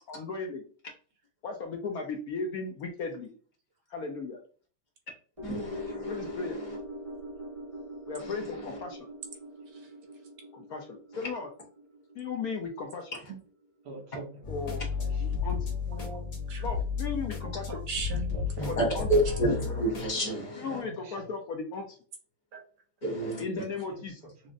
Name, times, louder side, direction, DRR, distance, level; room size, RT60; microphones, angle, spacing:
voice 1, 0.1-0.6 1.4-3.3 3.9-4.4 6.1-6.6 8.1-9.1 10.5-11.5 12.2-13.1 14.5-14.8 15.2-15.6 16.6-17.8 18.6-19.1 20.6-22.0 23.4-24.2, left 4 dB, 75° left, 2 dB, 0.8 m, -36 dB
voice 2, 5.4-6.4 6.7-6.8 8.2-8.4 18.6-20.8 23.0-23.4, right 1 dB, 35° left, -2 dB, 0.8 m, -29 dB
sound 1, 5.4-13.8 14.1-14.2, left 1 dB, 20° right, 1.0 m, -43 dB
voice 3, 13.8-15.4 18.3-19.0 20.6-21.2 23.2-23.4 23.9-24.5, right 2 dB, 80° right, 0 dB, 2.1 m, -47 dB
sound 2, 14.4-20.1, left 6 dB, 55° left, 1.6 m, -33 dB
voice 4, 15.8-16.7 17.4-18.8 22.5-22.6, right 5 dB, 60° right, 1 dB, 1.3 m, -39 dB
6.0 x 2.0 x 2.5 m, 0.40 s
omnidirectional pair, 2.3 m